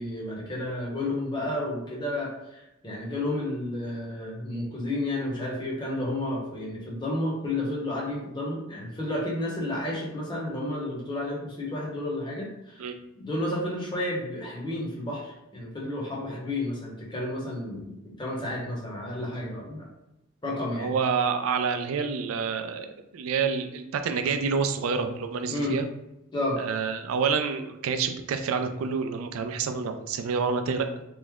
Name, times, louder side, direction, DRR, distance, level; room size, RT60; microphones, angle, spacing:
voice 1, 0.0-12.9 13.1-19.8 20.4-20.9 25.5-25.8 26.3-26.6, left 1 dB, 20° left, -4 dB, 0.8 m, -31 dB
voice 2, 20.7-25.9 26.6-30.9, right 5 dB, 85° right, 7 dB, 0.3 m, -28 dB
3.0 x 2.1 x 3.4 m, 0.90 s
head